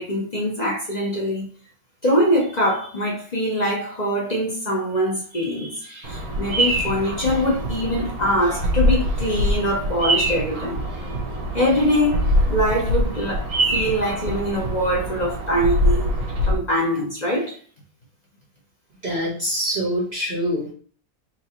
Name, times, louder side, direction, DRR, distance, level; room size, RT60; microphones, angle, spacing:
voice 1, 0.0-1.5 2.0-11.1 11.5-16.2 16.5-17.6, equal, 40° left, 0.6 m, -23 dB
Bird vocalization bird call bird song, 6.0-16.5, equal, 60° right, 1.3 m, -24 dB
voice 2, 19.0-20.7, equal, 35° right, 1.5 m, -25 dB
3.9 x 2.5 x 4.2 m
omnidirectional pair, 1.9 m